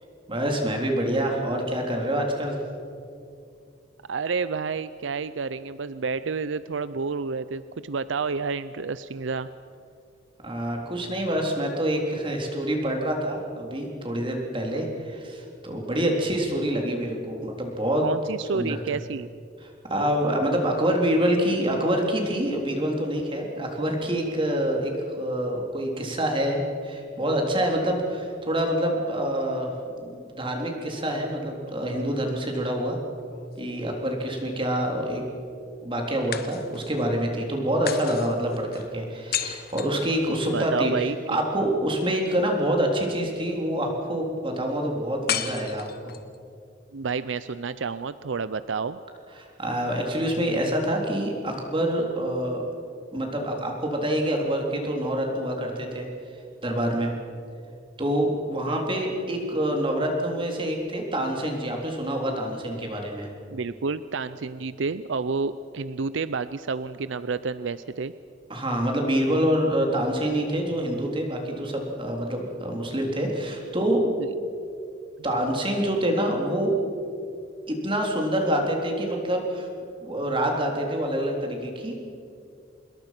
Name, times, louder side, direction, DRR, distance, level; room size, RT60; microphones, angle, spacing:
voice 1, 0.3-2.6 10.4-18.1 18.4-18.8 19.6-33.0 33.6-35.2 35.8-46.1 49.4-52.6 53.1-56.1 56.6-57.1 58.0-63.3 68.5-74.1 75.2-76.7 77.7-79.7 80.0-81.9, right 1 dB, 30° right, 1 dB, 3.7 m, -26 dB
voice 2, 4.1-9.5 18.0-19.3 40.5-41.2 46.9-49.0 58.7-58.8 63.5-68.1, right 4 dB, 80° right, 14 dB, 0.6 m, -30 dB
sound 1, 33.2-34.3 36.3-37.1 37.9-40.7 45.3-46.4, left 9 dB, 55° left, 1.3 m, -34 dB
26.5 x 21.0 x 6.0 m, 2.4 s
head